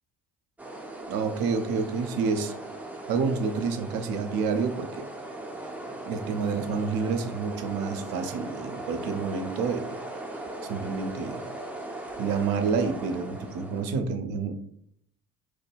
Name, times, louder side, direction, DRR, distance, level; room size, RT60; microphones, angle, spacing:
sound 1, 0.6-14.0, right 2 dB, 5° right, 0.5 m, -39 dB
voice 1, 1.1-2.5 3.1-5.1 6.1-10.0 10.7-11.4 12.2-14.5, right 5 dB, 50° right, 8 dB, 0.5 m, -28 dB
3.1 x 2.1 x 3.3 m, 0.69 s
figure-of-eight pair, 50°, 46 cm